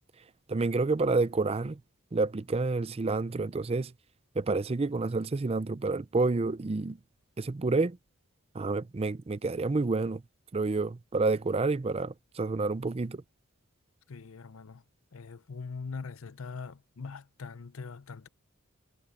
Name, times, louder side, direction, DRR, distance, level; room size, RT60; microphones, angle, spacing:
voice 1, 0.5-1.8 2.1-3.9 4.4-7.0 7.4-8.0 8.5-10.2 10.5-13.2, right 3 dB, 25° right, 0.4 m, -29 dB
voice 2, 14.1-14.8 15.1-18.3, left 4 dB, 65° left, 0.7 m, -42 dB
head